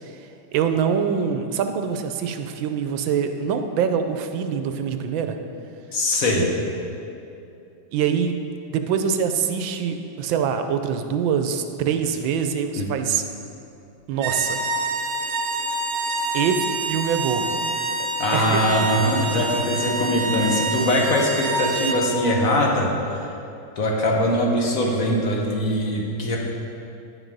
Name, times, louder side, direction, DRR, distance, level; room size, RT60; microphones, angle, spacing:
voice 1, 0.5-5.4 7.9-8.4 8.7-13.2 14.1-14.6 16.3-17.6 18.3-18.8, right 7 dB, 80° right, 7 dB, 1.3 m, -24 dB
voice 2, 5.9-6.5 12.7-12.9 18.2-23.3 23.8-26.4, left 1 dB, 50° left, -1 dB, 1.4 m, -22 dB
sound 1, 14.1-22.0, right 3 dB, 60° right, 1.0 m, -27 dB
10.0 x 6.1 x 5.2 m, 2.7 s
omnidirectional pair, 2.2 m